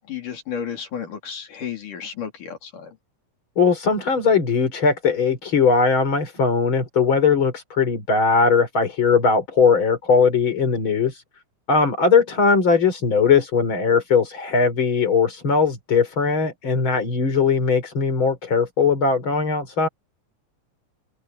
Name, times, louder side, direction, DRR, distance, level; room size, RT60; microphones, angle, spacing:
voice 1, 0.1-3.0, left 8 dB, 80° left, 4.8 m, -32 dB
voice 2, 3.6-11.2 11.7-19.9, left 5 dB, 40° left, 4.5 m, -19 dB
omnidirectional pair, 3.6 m